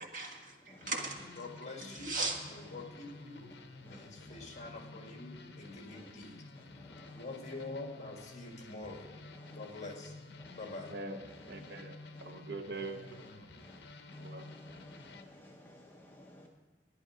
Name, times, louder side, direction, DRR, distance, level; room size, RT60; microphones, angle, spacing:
voice 1, 0.0-1.4 1.8-2.6 3.5-3.7, right 3 dB, 45° right, 1 dB, 1.6 m, -39 dB
voice 2, 0.7-1.1 2.5-2.8 3.8-4.7 5.9-6.1 6.5-7.7 8.9-9.8 10.4-10.8 11.3-11.8 12.1-12.3 12.7-13.3 13.6-13.8 14.1-16.5, left 1 dB, 10° left, 0 dB, 0.7 m, -56 dB
sound 1, 0.8-15.2, left 2 dB, 65° left, 0.8 m, -51 dB
voice 3, 1.4-2.2 2.5-3.5 3.8-6.4 7.1-9.0 9.5-10.1 10.6-10.9, left 2 dB, 40° left, 1 dB, 1.9 m, -45 dB
voice 4, 10.8-13.5 14.2-14.5, right 3 dB, 60° right, 6 dB, 0.8 m, -44 dB
11.5 x 10.0 x 5.0 m, 1.4 s
head